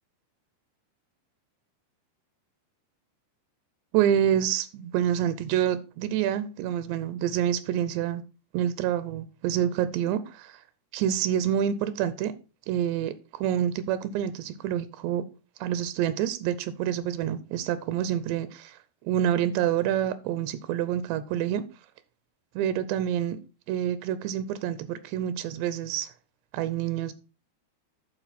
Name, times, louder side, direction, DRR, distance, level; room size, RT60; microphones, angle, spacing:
voice 1, 3.9-8.2 8.5-10.6 10.9-12.3 12.7-15.2 15.6-18.8 19.0-21.7 22.6-23.4 23.7-26.1 26.5-27.1, right 10 dB, 85° right, 2.8 m, -27 dB
12.0 x 4.8 x 4.1 m
omnidirectional pair, 4.9 m